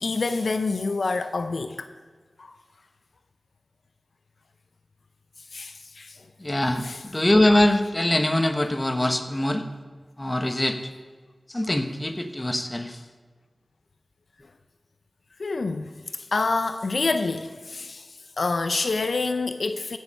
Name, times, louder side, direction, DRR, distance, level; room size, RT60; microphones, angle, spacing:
voice 1, 0.0-1.9 2.4-2.5 5.5-6.2 6.8-7.0 9.0-9.1 15.4-18.1 18.4-20.0, left 3 dB, 75° left, 0.5 m, -27 dB
voice 2, 6.4-9.6 10.2-10.8 11.5-13.0, left 1 dB, 25° left, 1.0 m, -23 dB
16.0 x 6.4 x 5.4 m
wide cardioid pair, 55°, 0 cm